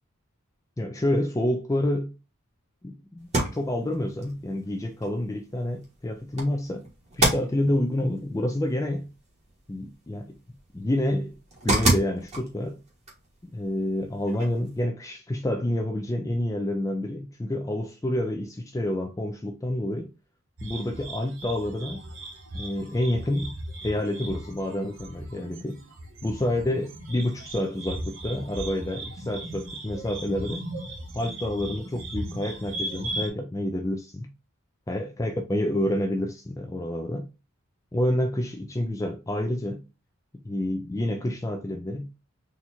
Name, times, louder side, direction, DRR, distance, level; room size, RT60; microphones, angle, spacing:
voice 1, 0.8-2.1 2.8-6.8 7.1-9.1 9.7-10.4 10.7-11.4 11.6-12.8 13.4-20.1 20.6-22.0 22.5-23.5 23.8-25.8 26.2-30.6 31.1-34.3 34.9-37.3 37.9-39.9 40.4-42.1, left 1 dB, 15° left, 0.3 m, -28 dB
sound 1, 3.2-14.8, right 2 dB, 30° right, 1.4 m, -32 dB
sound 2, 20.6-33.3, right 1 dB, 65° right, 1.4 m, -37 dB
4.2 x 2.4 x 4.3 m
head